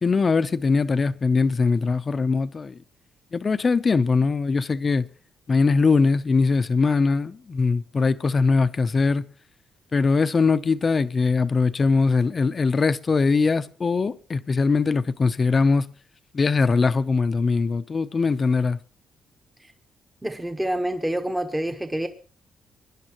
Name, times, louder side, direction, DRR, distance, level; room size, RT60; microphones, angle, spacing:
voice 1, 0.0-2.8 3.3-5.1 5.5-9.2 9.9-15.9 16.3-18.8, left 4 dB, 35° left, 0.7 m, -21 dB
voice 2, 20.2-22.1, right 1 dB, 10° right, 1.1 m, -27 dB
24.5 x 11.0 x 3.0 m
cardioid pair, 105°, 0 cm